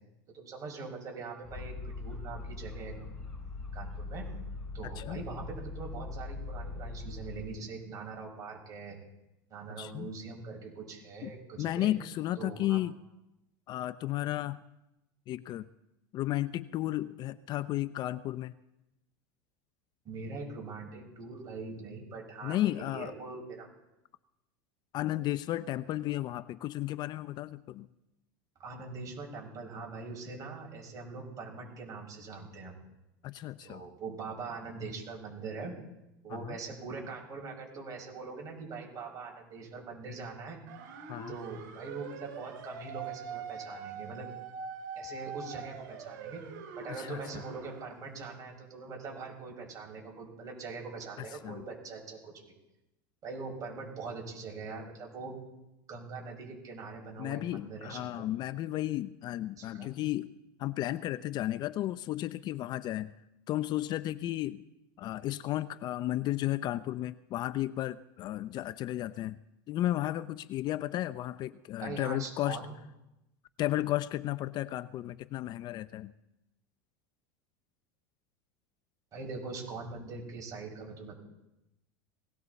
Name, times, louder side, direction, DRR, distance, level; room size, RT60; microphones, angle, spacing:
voice 1, 0.3-2.9 3.7-4.2 4.7-9.0 9.5-11.9 12.4-12.8 20.0-23.7 28.6-32.7 33.6-35.7 36.2-40.6 41.3-44.3 45.0-46.4 46.8-52.3 53.2-55.3 55.9-58.3 59.6-59.9 71.8-72.7 79.1-81.2, right 4 dB, 35° right, 0 dB, 6.0 m, -42 dB
sound 1, 1.4-7.5, left 3 dB, 5° left, 7.3 m, -41 dB
voice 2, 4.8-5.2 9.8-10.1 11.2-13.0 13.7-14.6 15.3-15.7 16.1-18.5 22.4-23.1 24.9-27.9 33.2-33.8 36.3-36.6 41.1-41.3 47.0-47.2 51.2-51.6 57.2-60.3 60.6-63.1 63.5-64.6 65.0-69.4 69.7-72.6 73.6-76.1, left 14 dB, 45° left, 15 dB, 0.5 m, -33 dB
sound 2, 40.7-47.9, right 6 dB, 75° right, 6.0 m, -43 dB
20.5 x 17.0 x 4.1 m, 0.92 s
supercardioid pair, 120°, 10 cm